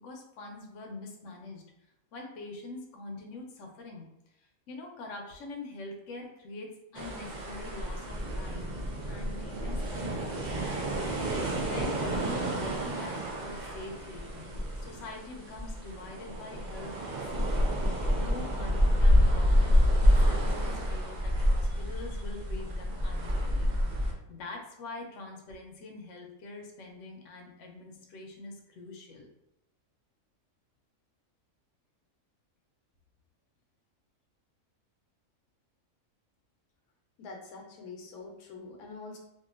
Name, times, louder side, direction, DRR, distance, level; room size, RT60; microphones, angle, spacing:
voice 1, 0.0-1.6 2.1-4.1 4.7-8.7 9.0-10.7 11.6-16.9 17.3-17.5 18.1-29.3, left 2 dB, 70° left, 1 dB, 0.9 m, -44 dB
sound 1, 6.9-24.1, equal, 75° right, 0.4 m, -28 dB
voice 2, 37.2-39.2, left 3 dB, 90° left, 0 dB, 1.1 m, -45 dB
2.7 x 2.4 x 2.4 m, 0.86 s
omnidirectional pair, 1.5 m